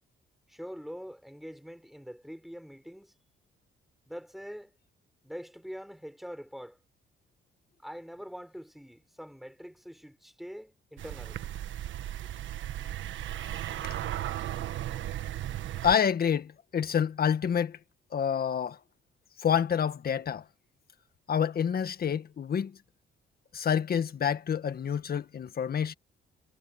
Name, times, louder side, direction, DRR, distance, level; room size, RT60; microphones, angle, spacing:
voice 1, 0.5-3.1 4.1-4.7 5.2-6.8 7.8-11.4, equal, ahead, 5.6 m, -44 dB
sound 1, 11.0-16.0, right 12 dB, 75° right, 1.4 m, -36 dB
voice 2, 15.8-17.8 18.1-18.8 19.4-20.4 21.3-22.8 23.5-25.9, left 8 dB, 50° left, 1.7 m, -28 dB
cardioid pair, 90°, 20 cm